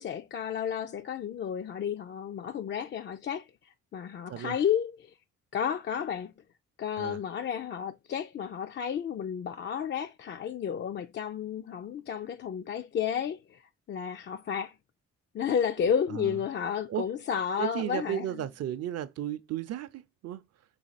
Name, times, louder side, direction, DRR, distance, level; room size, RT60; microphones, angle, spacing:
voice 1, 0.0-3.5 3.9-5.1 5.5-6.3 6.8-13.6 13.9-14.7 15.3-18.2, left 8 dB, 40° left, 0.4 m, -32 dB
voice 2, 4.3-4.6 7.0-7.2 15.8-16.4 16.9-17.0 17.6-20.4, right 11 dB, 55° right, 0.6 m, -35 dB
4.2 x 2.9 x 4.0 m
cardioid pair, 90°, 30 cm